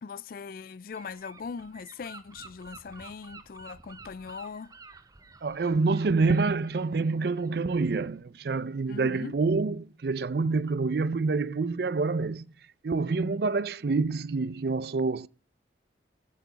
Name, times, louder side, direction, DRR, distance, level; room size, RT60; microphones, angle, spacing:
voice 1, 0.0-4.7 8.9-9.3, left 5 dB, 50° left, 0.3 m, -40 dB
Gull seagull / Wind, 0.9-8.2, right 4 dB, 20° right, 0.7 m, -52 dB
voice 2, 5.4-12.5 12.8-15.3, right 4 dB, 60° right, 0.5 m, -27 dB
8.4 x 8.3 x 4.0 m
head